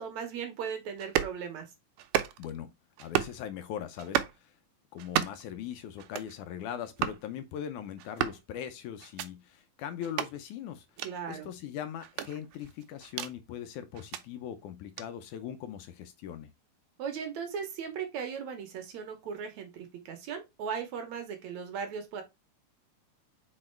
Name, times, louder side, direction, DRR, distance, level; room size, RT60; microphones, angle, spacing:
voice 1, 0.0-1.7 11.0-11.5 17.0-22.2, right 7 dB, 65° right, 2.2 m, -37 dB
sound 1, 1.0-1.4 2.0-2.6 3.0-3.4 4.0-4.4 5.0-5.5 6.0-6.3 7.0-7.2 8.0-8.4 9.0-9.3 10.0-10.3 11.0-11.1 12.0-13.3 13.9-14.2 15.0-15.1, right 12 dB, 85° right, 2.1 m, -32 dB
voice 2, 2.4-2.7 3.0-4.5 4.9-10.9 11.3-16.5, left 9 dB, 75° left, 2.0 m, -40 dB
5.2 x 4.3 x 4.4 m
omnidirectional pair, 3.8 m